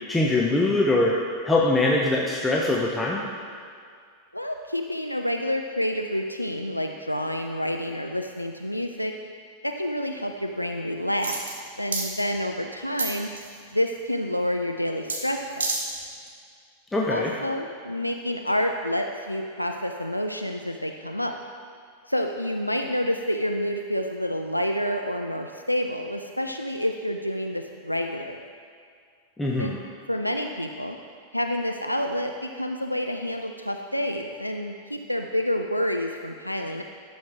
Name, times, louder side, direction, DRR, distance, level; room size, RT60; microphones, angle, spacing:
voice 1, 0.1-1.2 1.4-3.2 16.9-17.3 29.4-29.8, left 2 dB, 10° left, -3 dB, 0.7 m, -22 dB
voice 2, 4.3-9.1 9.6-11.4 11.8-13.3 13.7-15.7 17.1-21.4 22.1-28.5 29.6-29.7 30.1-31.0 31.3-36.8, equal, 90° left, 4 dB, 0.4 m, -28 dB
sound 1, 11.2-11.6 11.9-12.1 13.0-13.6 15.1-15.2 15.5-15.8 16.3-16.4, right 3 dB, 65° right, 1.3 m, -28 dB
12.0 x 6.1 x 3.6 m, 2.2 s
figure-of-eight pair, 90°, 0 cm